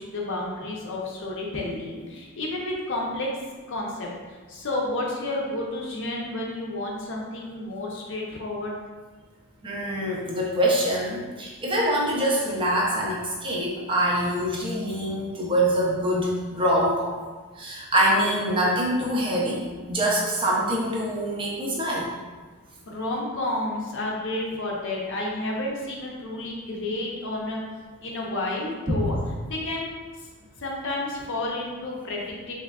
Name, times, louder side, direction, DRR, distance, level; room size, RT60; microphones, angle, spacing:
voice 1, 0.0-3.3 3.7-4.1 4.5-8.7 22.9-27.6 28.0-29.2 29.5-29.9 30.6-32.5, left 2 dB, 55° left, -2 dB, 0.6 m, -31 dB
voice 2, 9.6-17.2 17.6-22.1 28.9-29.1, right 1 dB, 25° right, -3 dB, 0.5 m, -24 dB
3.5 x 3.1 x 2.3 m, 1.4 s
head